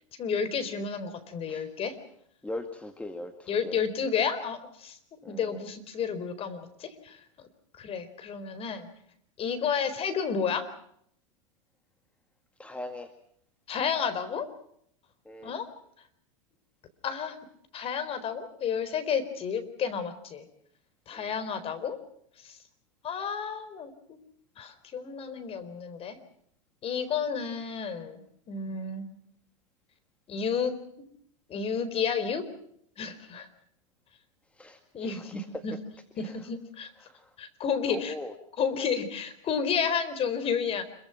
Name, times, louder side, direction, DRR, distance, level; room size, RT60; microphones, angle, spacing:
voice 1, 0.2-1.9 3.5-5.0 5.3-7.2 7.8-8.9 9.4-10.6 13.7-14.5 15.4-15.7 17.0-17.4 17.7-20.4 21.1-22.0 22.4-22.6 23.0-23.9 24.6-26.2 26.8-29.0 30.3-30.7 31.5-32.4 33.0-33.5 34.9-35.7 36.2-36.9 37.4-38.1 38.6-40.8, left 6 dB, 35° left, 11 dB, 4.3 m, -31 dB
voice 2, 2.4-3.8 5.2-5.6 12.6-13.1 15.3-15.5 21.1-21.3 34.6-35.4 36.2-36.4 37.0-37.2 37.9-38.3, left 1 dB, 5° left, 6 dB, 2.1 m, -40 dB
26.5 x 23.5 x 5.9 m, 0.69 s
hypercardioid pair, 115°, 18 cm